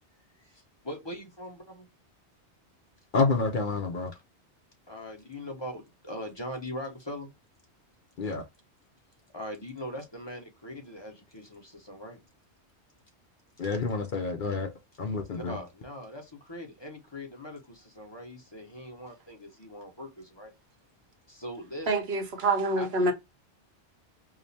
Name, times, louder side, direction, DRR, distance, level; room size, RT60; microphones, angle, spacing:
voice 1, 0.4-1.9 4.1-4.2 4.9-7.3 9.3-12.2 15.3-20.5 21.3-21.9 22.8-23.1, left 1 dB, 25° left, 0.9 m, -41 dB
voice 2, 3.1-4.1 8.2-8.4 13.6-14.7 15.0-15.6, left 4 dB, 55° left, 0.7 m, -28 dB
voice 3, 21.9-23.1, right 2 dB, 65° right, 1.0 m, -26 dB
5.0 x 2.1 x 2.6 m
omnidirectional pair, 1.2 m